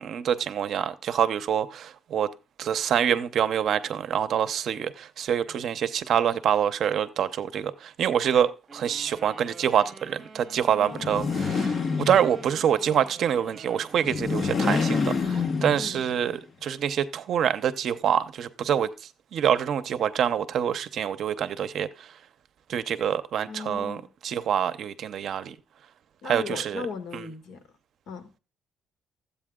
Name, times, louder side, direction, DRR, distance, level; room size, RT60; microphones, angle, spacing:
voice 1, 0.0-2.3 2.6-18.9 19.3-22.1 22.7-24.0 24.2-25.6 26.2-26.8 27.1-27.2, right 9 dB, 50° right, 0.7 m, -26 dB
sound 1, 8.7-15.1, right 3 dB, 20° right, 1.8 m, -47 dB
voice 2, 10.8-11.4 15.8-16.0 23.5-24.1 26.2-27.6 28.1-28.4, left 5 dB, 65° left, 2.1 m, -37 dB
sound 2, 10.9-12.6 14.0-16.2, left 4 dB, 30° left, 0.9 m, -27 dB
13.5 x 8.3 x 3.7 m
cardioid pair, 170°, 0 cm